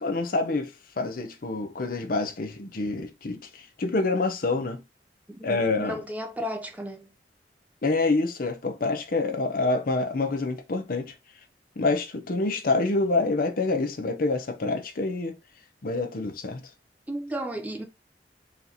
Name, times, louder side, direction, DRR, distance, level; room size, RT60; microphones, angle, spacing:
voice 1, 0.0-4.8 5.4-6.0 7.8-11.1 11.8-15.3 15.8-16.6, left 3 dB, 55° left, 0.6 m, -27 dB
voice 2, 5.3-7.1 17.1-17.8, equal, 10° right, 0.6 m, -34 dB
4.3 x 2.8 x 3.8 m
head